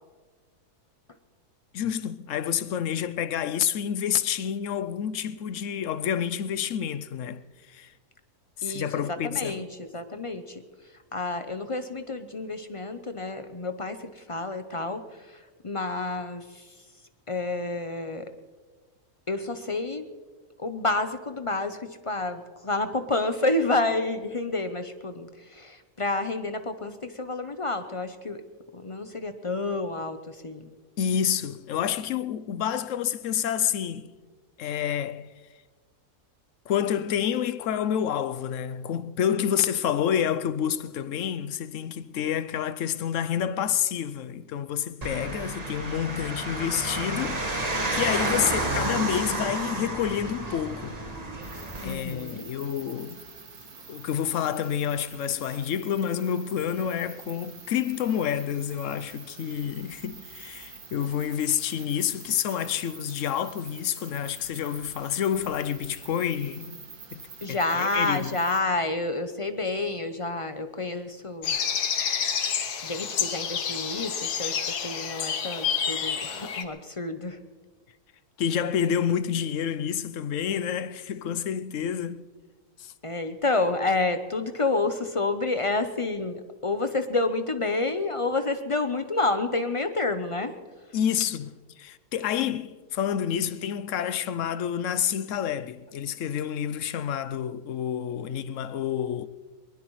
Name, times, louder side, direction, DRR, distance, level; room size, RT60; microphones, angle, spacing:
voice 1, 1.7-7.9 8.6-9.7 31.0-34.2 34.6-35.3 36.7-47.5 47.9-51.0 51.8-53.2 53.9-67.2 67.5-68.4 78.4-82.2 82.8-82.9 90.9-91.5 91.8-99.3, left 9 dB, 65° left, 0.9 m, -28 dB
voice 2, 8.6-10.6 11.1-16.8 17.3-18.3 19.3-20.1 20.6-28.4 28.7-30.7 51.8-52.5 67.4-71.6 72.8-77.4 83.0-90.5, left 2 dB, 40° left, 0.4 m, -29 dB
sound 1, 45.0-51.9, right 2 dB, 25° right, 1.6 m, -30 dB
sound 2, 51.4-68.6, right 5 dB, 75° right, 2.1 m, -46 dB
sound 3, 71.4-76.6, left 7 dB, 85° left, 1.6 m, -29 dB
22.0 x 20.5 x 3.2 m
omnidirectional pair, 1.6 m